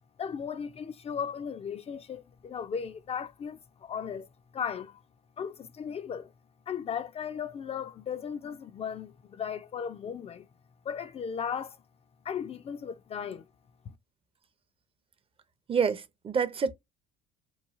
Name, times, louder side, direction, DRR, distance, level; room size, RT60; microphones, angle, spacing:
voice 1, 0.2-4.3 4.5-5.0 5.4-6.3 6.7-10.5 10.8-11.8 12.2-13.4, left 7 dB, 35° left, 0.4 m, -36 dB
voice 2, 15.7-16.7, right 6 dB, 30° right, 0.6 m, -27 dB
3.0 x 2.2 x 2.5 m
supercardioid pair, 85°, 18 cm